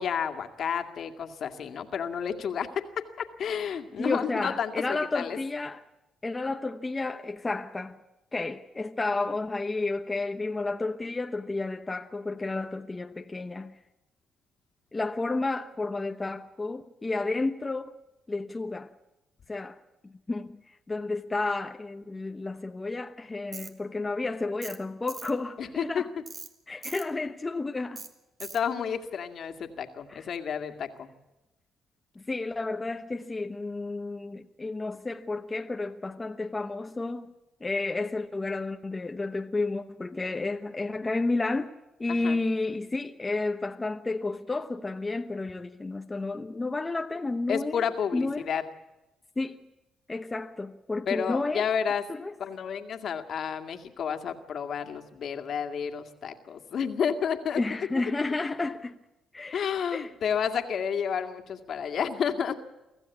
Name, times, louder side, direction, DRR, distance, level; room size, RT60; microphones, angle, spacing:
voice 1, 0.0-2.7 3.2-5.4 25.6-26.0 28.4-31.1 42.1-42.4 47.5-48.6 51.1-52.0 52.4-57.6 59.5-62.6, left 7 dB, 60° left, 2.2 m, -31 dB
voice 2, 4.0-5.8 6.2-8.0 8.3-13.8 14.9-18.0 18.3-18.9 19.5-20.6 20.9-26.1 26.7-28.0 30.1-30.3 32.2-37.3 37.6-41.7 42.0-47.8 48.1-48.5 49.4-49.7 50.1-51.7 52.1-52.3 57.6-59.0 59.3-59.6 59.9-60.1, left 3 dB, 20° left, 1.0 m, -31 dB
Tools, 23.5-23.7 24.6-24.8 25.1-25.3 26.3-26.5 26.8-27.1 28.0-28.1 28.4-28.6, right 4 dB, 40° right, 2.2 m, -41 dB
24.5 x 15.0 x 8.5 m
cardioid pair, 90°, 0 cm